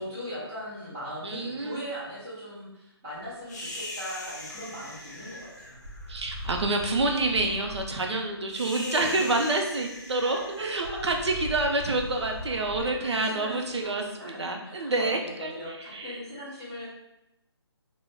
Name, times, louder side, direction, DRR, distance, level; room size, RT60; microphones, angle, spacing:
voice 1, 0.0-5.8 8.7-9.4 10.2-11.3 12.7-16.9, equal, 10° right, -11 dB, 0.6 m, -39 dB
voice 2, 1.2-1.8 6.1-15.5 15.9-16.2, right 2 dB, 90° right, 2 dB, 0.5 m, -28 dB
sound 1, 3.5-13.8, left 1 dB, 40° left, 0.5 m, -40 dB
2.3 x 2.1 x 3.2 m, 0.88 s
hypercardioid pair, 170°, 14 cm